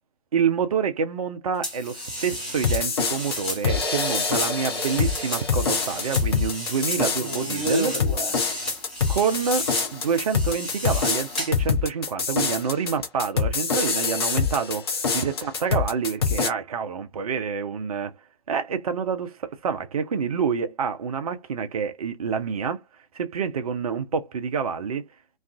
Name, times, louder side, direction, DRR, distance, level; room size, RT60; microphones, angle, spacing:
voice 1, 0.3-8.0 8.4-8.7 9.1-18.1 18.5-22.8 23.1-25.0, right 6 dB, 35° right, 0.4 m, -27 dB
sound 1, 1.6-11.7, equal, ahead, 0.8 m, -32 dB
sound 2, 2.6-16.5, left 5 dB, 25° left, 0.4 m, -25 dB
2.3 x 2.3 x 2.3 m
figure-of-eight pair, 130°, 33 cm